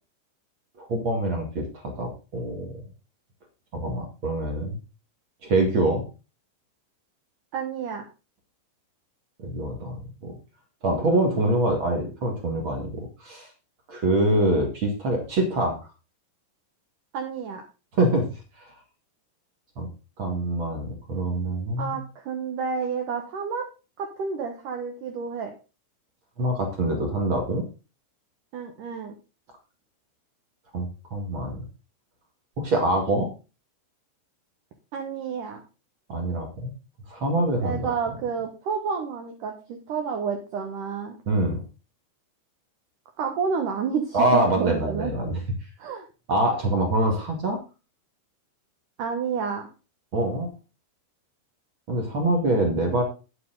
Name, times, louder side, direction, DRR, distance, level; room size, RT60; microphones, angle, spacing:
voice 1, 0.8-2.7 3.7-4.8 5.4-6.0 9.4-10.3 10.8-13.5 13.9-15.8 17.9-18.3 18.6-18.7 19.7-19.9 20.2-22.0 26.4-27.6 30.7-31.5 32.6-33.3 36.1-36.7 37.1-37.8 41.2-41.6 44.1-45.4 46.3-47.6 50.1-50.5 51.9-53.0, right 1 dB, 50° right, 2 dB, 1.5 m, -25 dB
voice 2, 7.5-8.0 17.1-17.6 21.8-23.7 24.0-25.5 28.5-29.1 34.9-35.6 37.6-41.1 43.2-45.1 45.8-46.0 49.0-49.7, right 6 dB, 85° right, 4 dB, 1.8 m, -30 dB
9.6 x 9.5 x 3.9 m, 0.31 s
omnidirectional pair, 5.7 m